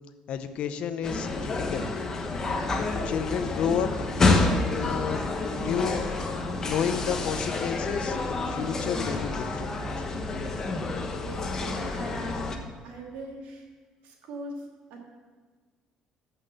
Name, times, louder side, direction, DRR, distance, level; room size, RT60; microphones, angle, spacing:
voice 1, 0.3-1.9 2.8-4.1 4.4-6.2 6.6-10.0, left 7 dB, 55° left, 10 dB, 0.8 m, -31 dB
sound 1, 1.0-12.6, left 3 dB, 25° left, 1.1 m, -28 dB
voice 2, 11.2-12.2 12.8-13.7 14.0-15.0, right 1 dB, 85° right, 0 dB, 2.6 m, -41 dB
14.0 x 5.9 x 6.8 m, 1.5 s
cardioid pair, 155°, 2 cm